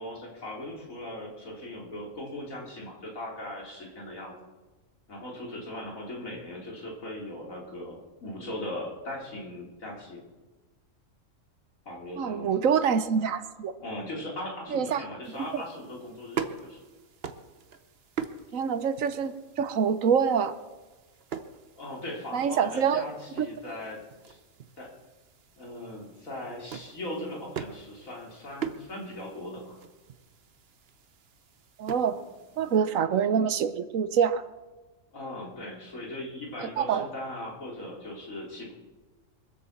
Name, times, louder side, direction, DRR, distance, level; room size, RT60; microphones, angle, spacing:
voice 1, 0.0-4.3 5.1-10.2 11.9-12.5 13.8-16.8 21.7-24.0 24.3-24.4 24.8-24.9 25.6-29.8 32.6-32.7 35.1-38.7, left 1 dB, 80° left, -2 dB, 3.8 m, -39 dB
voice 2, 12.2-13.7 14.7-15.0 15.5-15.6 18.5-20.5 22.3-23.0 23.4-23.5 31.8-32.2 32.6-34.4 36.6-37.1, right 7 dB, 75° right, 12 dB, 1.2 m, -25 dB
sound 1, 15.2-32.8, right 7 dB, 50° right, 1.1 m, -42 dB
23.0 x 8.5 x 7.2 m, 1.2 s
omnidirectional pair, 1.4 m